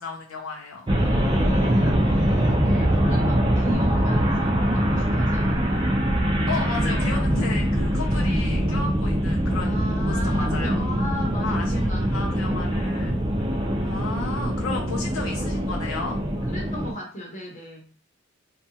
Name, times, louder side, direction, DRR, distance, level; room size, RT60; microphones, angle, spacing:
voice 1, 0.0-0.9 6.5-10.8 11.4-11.8 12.1-13.2 13.8-16.2, left 3 dB, 85° left, 0 dB, 0.5 m, -33 dB
sound 1, 0.9-16.9, equal, 25° right, 0.4 m, -23 dB
voice 2, 1.0-5.9 6.6-7.3 9.6-13.0 16.4-17.9, equal, 40° left, -1 dB, 0.9 m, -37 dB
2.8 x 2.3 x 2.7 m, 0.40 s
head